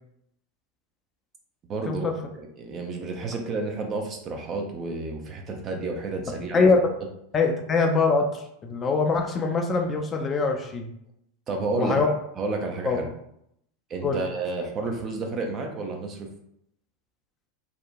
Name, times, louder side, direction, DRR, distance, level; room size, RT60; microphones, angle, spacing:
voice 1, 1.7-2.1 2.3-6.7 11.5-13.1 13.9-16.3, right 3 dB, 35° right, 2 dB, 0.5 m, -31 dB
voice 2, 6.5-6.9 7.3-10.9 11.8-12.1 12.8-13.0 14.0-14.2, left 4 dB, 25° left, 3 dB, 0.4 m, -23 dB
2.8 x 2.1 x 2.5 m, 0.75 s
figure-of-eight pair, 85°, 0 cm